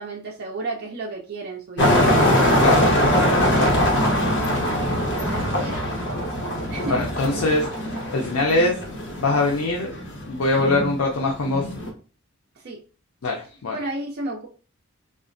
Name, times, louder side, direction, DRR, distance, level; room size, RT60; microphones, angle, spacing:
voice 1, 0.0-2.0 3.3-3.8 5.1-7.1 12.6-12.8 13.7-14.5, right 2 dB, 45° right, -1 dB, 0.4 m, -33 dB
sound 1, 1.8-11.9, equal, 55° left, 0.9 m, -22 dB
voice 2, 2.6-3.7 6.9-8.8 9.2-9.9 10.3-11.6 13.2-13.8, left 2 dB, 80° left, -1 dB, 0.5 m, -23 dB
3.6 x 2.0 x 2.5 m, 0.37 s
head